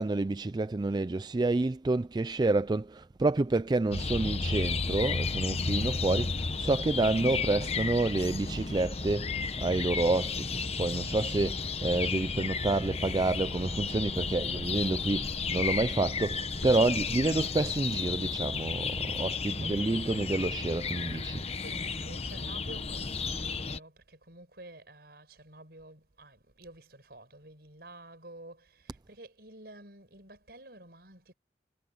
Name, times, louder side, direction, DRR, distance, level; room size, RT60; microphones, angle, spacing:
voice 1, 0.0-21.5, right 2 dB, 25° right, 0.4 m, -29 dB
sound 1, 3.9-23.8, left 4 dB, 35° left, 1.1 m, -33 dB
sound 2, 14.3-19.4, equal, 80° left, 5.2 m, -50 dB
voice 2, 19.6-20.3 21.6-31.3, right 2 dB, 60° right, 7.7 m, -51 dB
head